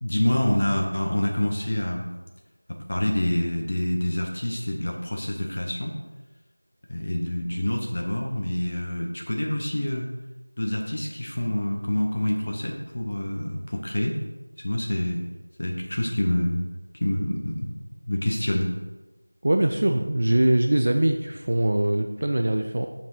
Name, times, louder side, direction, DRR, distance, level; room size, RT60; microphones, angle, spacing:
voice 1, 0.0-2.1 2.9-6.0 6.9-10.1 10.6-14.2 14.6-15.2 15.6-16.6 16.9-17.7 18.1-18.7, left 1 dB, 30° left, 0 dB, 0.9 m, -26 dB
voice 2, 19.4-22.9, right 1 dB, 30° right, 5 dB, 0.4 m, -22 dB
7.1 x 6.4 x 4.6 m, 1.1 s
figure-of-eight pair, 175°, 0 cm